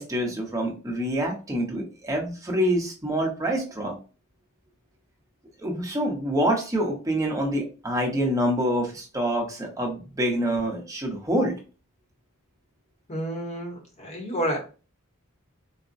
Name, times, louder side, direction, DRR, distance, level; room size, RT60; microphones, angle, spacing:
voice 1, 0.0-4.0 5.6-11.5, equal, 15° right, -1 dB, 0.8 m, -26 dB
voice 2, 13.1-14.6, equal, 30° left, 1 dB, 1.0 m, -30 dB
4.0 x 2.1 x 2.5 m, 0.34 s
head